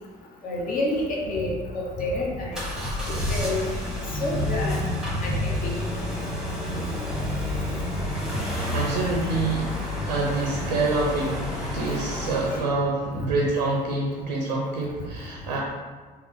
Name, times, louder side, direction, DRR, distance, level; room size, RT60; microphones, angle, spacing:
voice 1, 0.4-2.6 3.1-3.6 4.2-4.8 5.2-5.7 6.2-6.3 11.8-12.0 12.4-12.7 13.1-13.3, left 2 dB, 40° left, -2 dB, 0.8 m, -29 dB
sound 1, 2.5-12.7, left 1 dB, 5° right, 1.1 m, -29 dB
voice 2, 8.7-9.7 10.0-11.3 11.7-15.6, right 3 dB, 80° right, -2 dB, 0.5 m, -26 dB
3.5 x 2.2 x 3.5 m, 1.5 s
figure-of-eight pair, 60°, 21 cm